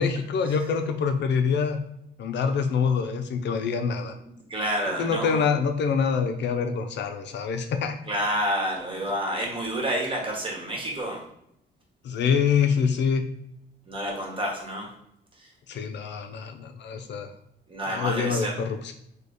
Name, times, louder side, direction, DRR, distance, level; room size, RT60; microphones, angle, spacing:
voice 1, 0.0-1.8 2.2-4.1 4.8-7.9 12.0-13.2 15.7-17.3 17.9-18.9, left 6 dB, 65° left, 7 dB, 0.5 m, -25 dB
voice 2, 4.5-5.4 8.1-11.2 13.9-14.9 15.4-15.5 17.7-18.5, right 1 dB, 25° right, -1 dB, 1.3 m, -29 dB
3.2 x 2.3 x 4.0 m, 0.75 s
cardioid pair, 90°, 20 cm